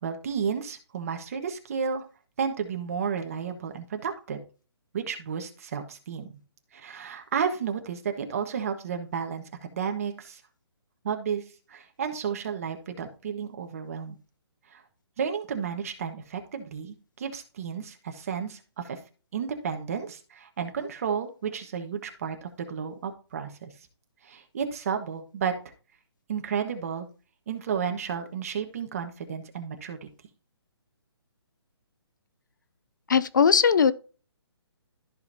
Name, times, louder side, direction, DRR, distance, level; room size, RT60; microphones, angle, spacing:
voice 1, 0.0-2.0 2.4-4.4 4.9-6.4 6.7-9.4 9.7-10.4 11.0-11.4 11.7-14.2 14.7-14.8 15.2-19.0 19.3-23.7 24.2-25.5 26.3-27.1 27.5-30.1, right 7 dB, 35° right, 1.3 m, -32 dB
voice 2, 33.1-33.9, left 6 dB, 45° left, 0.5 m, -19 dB
14.0 x 5.2 x 2.7 m
hypercardioid pair, 170°, 14 cm